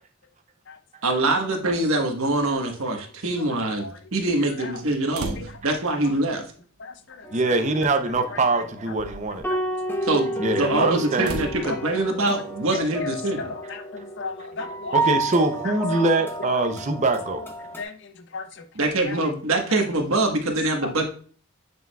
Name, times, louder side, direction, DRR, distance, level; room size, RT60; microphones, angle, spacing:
voice 1, 1.0-5.4 5.6-6.4 10.0-13.5 18.7-21.1, right 2 dB, 75° right, 1.3 m, -24 dB
sound 1, 5.1-5.8 7.0-7.1 8.1-8.3 8.8-9.4 11.2-11.6, right 2 dB, 90° right, 1.0 m, -34 dB
voice 2, 6.8-7.3 8.3-8.4 10.7-10.8 11.6-11.8 12.3-12.4 13.4-15.0 16.6-16.7 17.8-19.2 20.8-20.9, left 4 dB, 55° left, 0.7 m, -35 dB
sound 2, 7.2-17.8, right 1 dB, 10° left, 0.7 m, -31 dB
voice 3, 7.3-9.4 10.4-11.4 14.9-17.4, right 2 dB, 30° right, 0.6 m, -23 dB
9.3 x 4.7 x 2.3 m
head